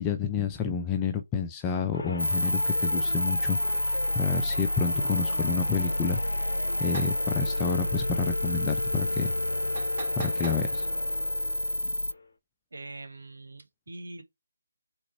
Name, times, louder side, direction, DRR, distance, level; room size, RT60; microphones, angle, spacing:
voice 1, 0.0-6.5 6.8-9.3 10.2-10.9, left 6 dB, 15° left, 0.4 m, -30 dB
sound 1, 1.9-12.3, left 3 dB, 50° left, 1.2 m, -37 dB
sound 2, 2.2-12.1, left 1 dB, 85° left, 0.3 m, -29 dB
sound 3, 6.9-7.2 9.8-10.6, right 4 dB, 35° right, 1.9 m, -40 dB
voice 2, 12.7-14.2, right 2 dB, 60° right, 1.1 m, -43 dB
3.7 x 2.9 x 4.3 m
figure-of-eight pair, 150°, 0 cm